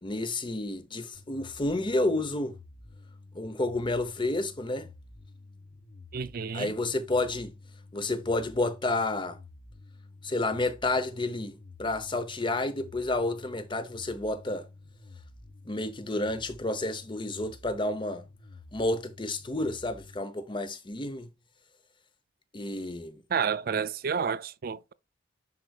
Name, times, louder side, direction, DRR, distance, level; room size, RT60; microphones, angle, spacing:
voice 1, 0.0-2.5 3.3-4.9 6.5-7.5 7.9-9.4 10.2-14.6 15.7-18.2 18.7-21.3 22.5-23.2, left 2 dB, 25° left, 0.9 m, -30 dB
sound 1, 1.1-20.2, left 2 dB, 70° left, 4.0 m, -51 dB
voice 2, 6.1-6.7 23.3-24.9, right 6 dB, 50° right, 0.4 m, -30 dB
10.5 x 4.6 x 2.4 m
head